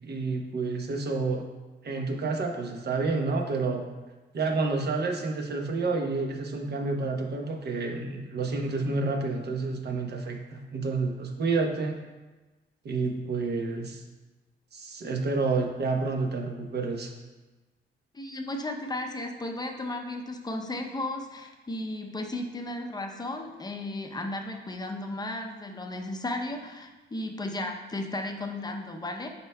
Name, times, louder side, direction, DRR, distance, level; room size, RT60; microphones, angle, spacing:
voice 1, 0.1-1.4 1.8-3.9 4.3-12.0 12.8-14.0 14.7-17.1, right 3 dB, 55° right, 2 dB, 0.8 m, -29 dB
voice 2, 18.1-29.3, left 1 dB, 20° left, 3 dB, 0.6 m, -34 dB
9.6 x 4.4 x 2.2 m, 1.2 s
cardioid pair, 125°, 21 cm